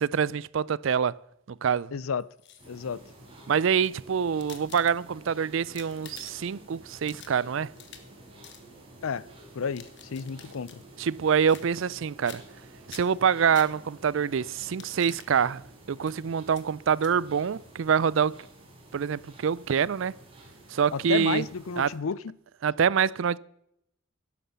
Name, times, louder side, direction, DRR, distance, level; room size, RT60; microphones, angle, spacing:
voice 1, 0.1-1.1 1.5-1.9 3.5-7.7 11.0-12.4 12.9-18.4 18.9-20.1 20.7-21.4 21.8-21.9 22.6-23.4, right 7 dB, 65° right, 0.4 m, -25 dB
voice 2, 1.9-2.3 2.7-3.0 9.0-9.3 9.5-10.8 20.9-22.3, left 6 dB, 80° left, 0.5 m, -31 dB
sound 1, 2.2-2.9 3.6-5.3 5.6-6.5 6.9-8.2 8.4-8.7 9.5-10.8 11.5-12.0 12.3-12.6 12.9-14.1 14.6-15.3 16.0-16.1 16.5-16.6 17.0-17.1, left 8 dB, 55° left, 1.5 m, -49 dB
sound 2, 2.6-22.0, right 1 dB, 25° right, 4.2 m, -51 dB
11.5 x 11.0 x 7.0 m
head